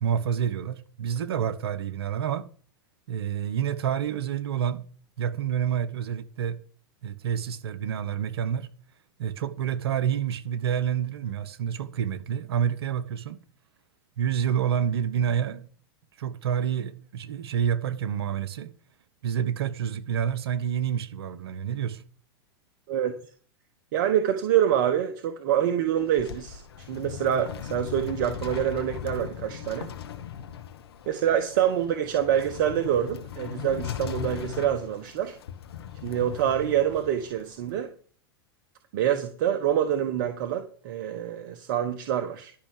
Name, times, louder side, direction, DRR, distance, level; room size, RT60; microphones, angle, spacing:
voice 1, 0.0-2.5 3.1-4.8 5.2-6.6 7.0-8.7 9.2-13.4 14.2-15.7 16.2-18.7 19.2-22.0, right 8 dB, 75° right, 1.2 m, -28 dB
voice 2, 22.9-23.2 23.9-26.6 26.9-29.9 31.1-35.3 36.0-37.9 38.9-42.5, right 10 dB, 60° right, 1.3 m, -26 dB
sound 1, 25.8-37.7, left 9 dB, 75° left, 1.5 m, -39 dB
12.0 x 5.8 x 6.8 m
hypercardioid pair, 105°, 13 cm